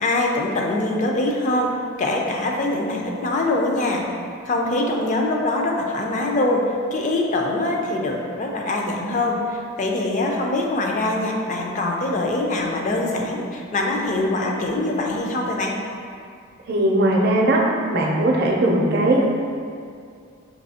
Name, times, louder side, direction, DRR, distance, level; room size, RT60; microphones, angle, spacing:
voice 1, 0.0-4.1 4.5-15.7, left 2 dB, 35° left, 0 dB, 0.4 m, -23 dB
voice 2, 16.7-17.6 17.9-19.3, right 1 dB, 50° right, -1 dB, 0.5 m, -19 dB
5.2 x 2.7 x 2.8 m, 2.3 s
head